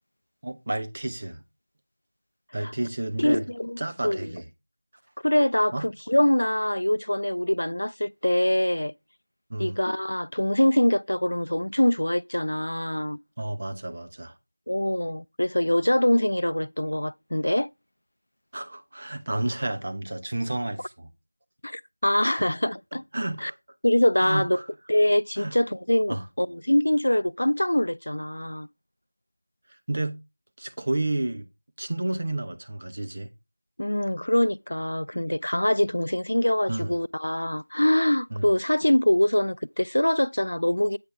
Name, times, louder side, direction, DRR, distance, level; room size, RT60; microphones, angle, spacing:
voice 1, 0.4-1.4 2.5-3.5 3.8-4.5 5.7-5.9 9.5-9.8 13.4-14.4 18.5-21.1 22.4-22.5 22.9-23.6 24.2-24.7 25.4-25.6 26.1-26.3 29.7-30.2 30.6-31.5 31.8-33.3 36.7-36.9 38.3-38.5, right 2 dB, 40° right, 0.9 m, -31 dB
voice 2, 3.2-3.8 4.0-4.2 5.2-8.9 9.6-13.2 14.7-17.7 21.6-23.0 23.4-23.5 23.8-24.6 24.9-28.7 33.8-41.0, left 1 dB, 75° left, 0.3 m, -24 dB
8.6 x 4.0 x 4.5 m
figure-of-eight pair, 175°, 0 cm